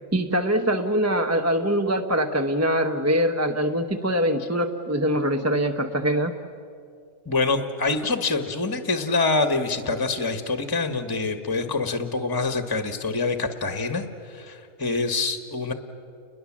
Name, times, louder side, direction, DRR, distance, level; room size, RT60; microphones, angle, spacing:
voice 1, 0.1-6.3, equal, 15° right, 5 dB, 0.7 m, -23 dB
voice 2, 7.3-15.7, left 3 dB, 15° left, 8 dB, 1.2 m, -25 dB
30.0 x 21.5 x 7.4 m, 2.5 s
omnidirectional pair, 1.4 m